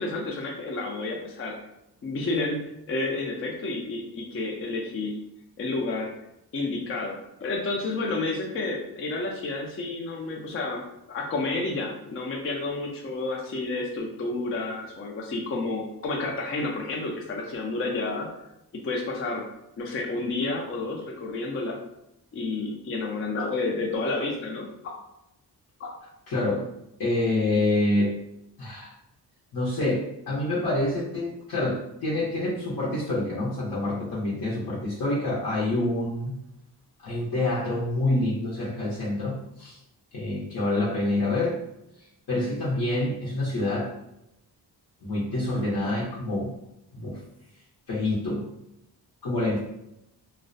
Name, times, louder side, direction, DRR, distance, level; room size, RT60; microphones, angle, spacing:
voice 1, 0.0-1.6 2.0-5.2 5.6-6.1 6.5-7.1 7.4-10.8 11.1-18.3 18.7-19.5 19.8-21.8 22.3-24.7 25.8-25.9, left 3 dB, 35° left, 0 dB, 0.4 m, -30 dB
voice 2, 26.3-26.7 27.0-28.2 28.6-28.9 29.5-36.4 37.0-39.8 40.1-41.6 42.3-43.9 45.0-46.5 46.9-47.2 47.9-48.5 49.2-49.6, left 2 dB, 60° left, -7 dB, 0.7 m, -27 dB
2.4 x 2.0 x 2.5 m, 0.85 s
cardioid pair, 95°, 40 cm